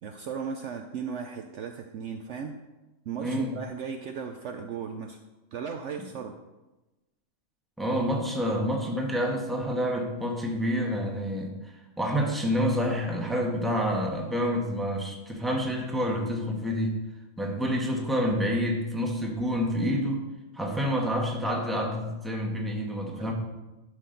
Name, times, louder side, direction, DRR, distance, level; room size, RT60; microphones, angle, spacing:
voice 1, 0.0-2.6 3.1-5.2 5.5-6.3 23.2-23.3, right 6 dB, 65° right, 5 dB, 0.8 m, -36 dB
voice 2, 3.2-3.6 7.8-17.0 17.4-20.2 20.5-23.3, equal, ahead, 0 dB, 1.1 m, -28 dB
11.5 x 6.2 x 3.8 m, 1.1 s
omnidirectional pair, 1.5 m